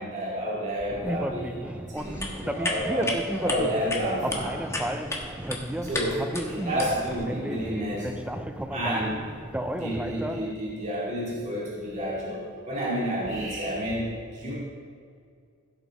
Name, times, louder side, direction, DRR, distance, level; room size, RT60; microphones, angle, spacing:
voice 1, 0.0-4.6 5.8-8.1 8.7-9.3 9.7-14.5, equal, 30° right, -7 dB, 2.2 m, -30 dB
sound 1, 0.9-10.5, right 1 dB, 5° right, 0.4 m, -33 dB
sound 2, 2.0-7.1, left 2 dB, 15° left, 1.3 m, -34 dB
16.0 x 7.9 x 3.5 m, 2.2 s
head